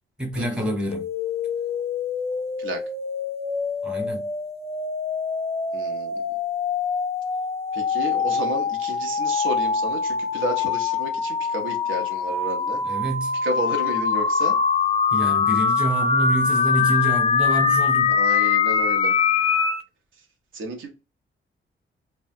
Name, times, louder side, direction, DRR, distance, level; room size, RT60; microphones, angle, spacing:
voice 1, 0.2-1.1 3.8-4.3 12.8-13.4 15.1-18.2, right 1 dB, 5° right, 0.9 m, -27 dB
sound 1, 0.9-19.8, left 5 dB, 30° left, 0.4 m, -23 dB
voice 2, 5.7-6.2 7.7-12.8 13.4-14.6 18.1-19.1 20.2-20.3 20.5-20.9, right 1 dB, 70° right, 0.8 m, -31 dB
2.7 x 2.2 x 2.6 m
cardioid pair, 105°, 21 cm